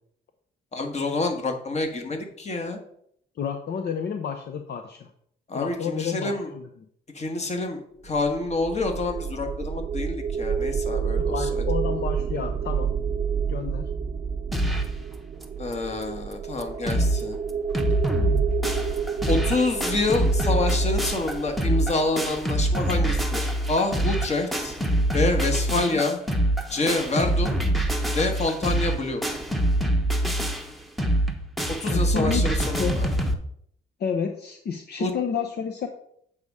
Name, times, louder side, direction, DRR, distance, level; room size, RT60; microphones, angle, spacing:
voice 1, 0.7-2.8 5.5-6.5 7.1-11.6 15.6-17.4 19.3-24.7 25.1-26.2 26.7-27.6 28.1-29.2 31.8-33.1 35.0-35.1, left 2 dB, 35° left, 5 dB, 1.4 m, -27 dB
voice 2, 3.4-5.1 5.5-6.6 11.2-12.9 13.5-13.8 25.7-26.0 31.9-32.5 32.8-33.0 34.0-35.9, left 6 dB, 55° left, 5 dB, 0.7 m, -30 dB
sound 1, 8.1-23.2, right 6 dB, 30° right, 0.4 m, -30 dB
sound 2, 14.5-15.0 15.4-15.5 15.7-15.8 16.3-16.4 16.6-17.2 17.5-33.3, right 1 dB, ahead, 0.9 m, -25 dB
7.9 x 3.6 x 5.4 m, 0.69 s
cardioid pair, 90°, 20 cm